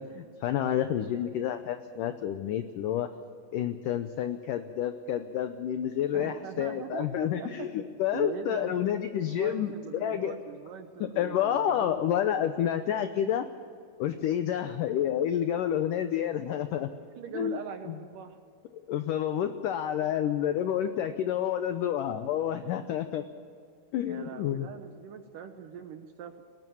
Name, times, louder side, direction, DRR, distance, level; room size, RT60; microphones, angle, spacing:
voice 1, 0.0-3.1 3.5-10.4 11.0-13.5 14.0-16.9 17.3-17.6 17.9-18.0 18.9-23.2 23.9-24.7, left 10 dB, 90° left, 9 dB, 1.8 m, -29 dB
voice 2, 6.1-7.7 8.1-9.0 9.3-12.4 17.2-18.4 24.0-26.4, right 7 dB, 70° right, 7 dB, 2.2 m, -41 dB
21.0 x 18.5 x 7.2 m, 2.3 s
omnidirectional pair, 4.8 m